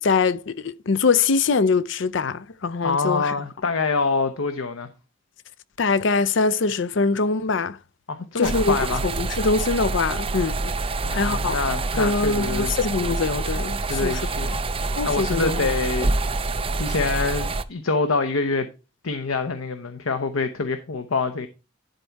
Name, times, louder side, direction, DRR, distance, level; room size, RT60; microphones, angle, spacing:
voice 1, 0.0-3.3 5.8-7.8 8.4-8.8 9.0-10.7 11.1-11.6 12.0-14.2 14.5-14.6 14.9-15.7, left 4 dB, 60° left, 0.5 m, -23 dB
voice 2, 2.8-4.9 8.1-9.0 11.0-12.7 13.8-14.5 15.0-16.1 16.7-18.7 19.0-21.5, left 4 dB, 85° left, 0.8 m, -25 dB
sound 1, 8.4-17.6, right 3 dB, 25° right, 0.4 m, -26 dB
11.5 x 4.1 x 4.6 m
head